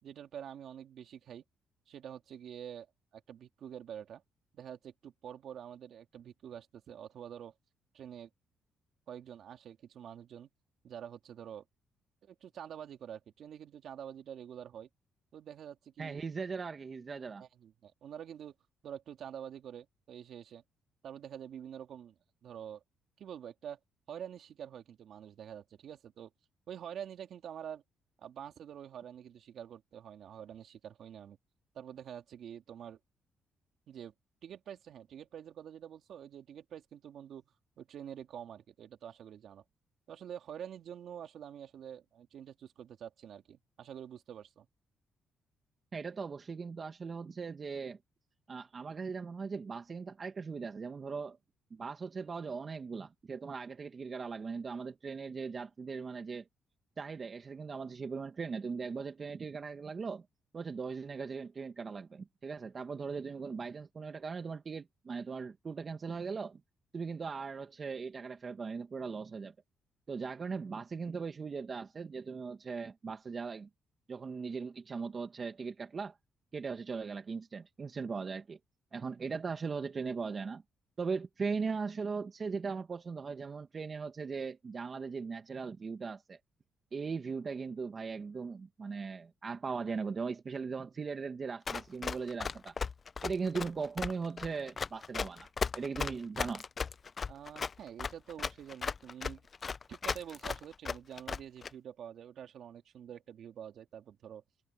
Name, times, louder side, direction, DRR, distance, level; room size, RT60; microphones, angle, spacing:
voice 1, 0.0-1.4 1.9-2.9 3.1-4.2 4.5-7.5 7.9-8.3 9.1-10.5 10.8-11.6 12.2-14.9 15.3-16.4 17.4-18.5 18.8-20.6 21.0-22.1 22.4-22.8 23.2-23.8 24.1-26.3 26.7-27.8 28.2-31.4 31.7-33.0 33.9-34.1 34.4-39.6 40.1-44.7 97.3-99.5 99.9-104.4, right 9 dB, 65° right, 3.0 m, -47 dB
voice 2, 16.0-17.4 45.9-48.0 48.5-51.4 51.7-56.5 57.0-60.2 60.5-66.6 66.9-69.5 70.1-73.7 74.1-76.2 76.5-78.6 78.9-80.6 81.0-86.4 86.9-92.7 93.2-95.5 95.7-96.6, right 5 dB, 40° right, 1.7 m, -39 dB
Run, 91.7-101.7, left 5 dB, 40° left, 0.7 m, -36 dB
cardioid pair, 90°, 0 cm